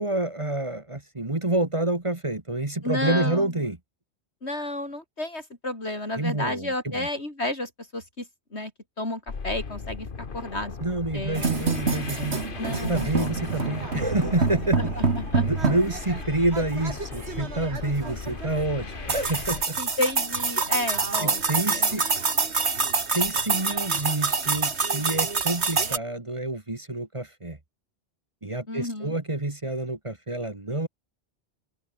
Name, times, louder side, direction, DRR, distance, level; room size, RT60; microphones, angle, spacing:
voice 1, 0.0-3.8 6.2-7.1 10.8-12.4 12.7-14.9 15.5-19.8 21.2-22.0 23.1-27.6 28.4-30.9, right 2 dB, 30° right, 1.9 m, -28 dB
voice 2, 2.8-3.6 4.4-8.7 9.0-10.8 11.1-11.6 12.6-13.3 14.8-15.5 19.8-22.1 28.7-29.1, left 1 dB, 80° left, 6.7 m, -32 dB
sound 1, 9.3-19.6, left 5 dB, 50° left, 1.6 m, -37 dB
sound 2, 11.4-26.0, right 4 dB, 80° right, 2.4 m, -27 dB
open air
omnidirectional pair, 1.1 m